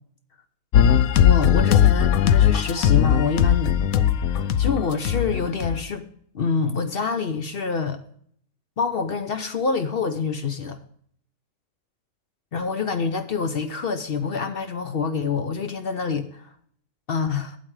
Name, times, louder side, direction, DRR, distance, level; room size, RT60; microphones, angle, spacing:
sound 1, 0.7-5.8, left 9 dB, 80° left, 1.0 m, -19 dB
voice 1, 1.2-3.8 4.3-6.1 6.3-8.0 8.8-10.8 12.5-16.5 17.1-17.6, left 5 dB, 50° left, 0.8 m, -26 dB
12.0 x 8.6 x 3.2 m
omnidirectional pair, 1.5 m